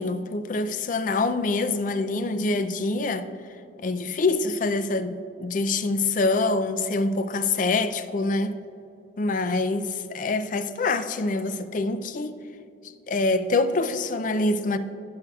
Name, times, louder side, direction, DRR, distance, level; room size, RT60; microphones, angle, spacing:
voice 1, 0.0-3.3 3.8-8.6 9.2-12.4 13.1-14.8, left 3 dB, 40° left, 0.4 m, -25 dB
18.5 x 6.8 x 2.3 m
head